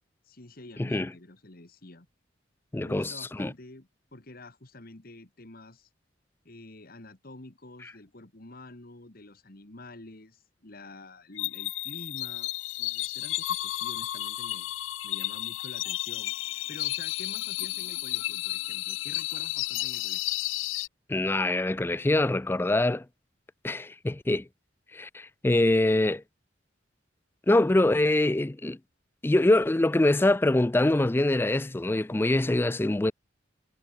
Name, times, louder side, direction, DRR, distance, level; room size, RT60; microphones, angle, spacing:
voice 1, 0.2-2.1 2.8-5.9 6.5-14.7 15.0-20.3, left 2 dB, 50° left, 1.9 m, -48 dB
voice 2, 0.8-1.1 2.7-3.1 3.4-3.5 21.1-23.0 23.6-24.5 24.9-26.2 27.5-28.8 29.2-33.1, left 2 dB, 10° left, 0.4 m, -24 dB
sound 1, 11.4-20.9, left 17 dB, 85° left, 0.4 m, -32 dB
head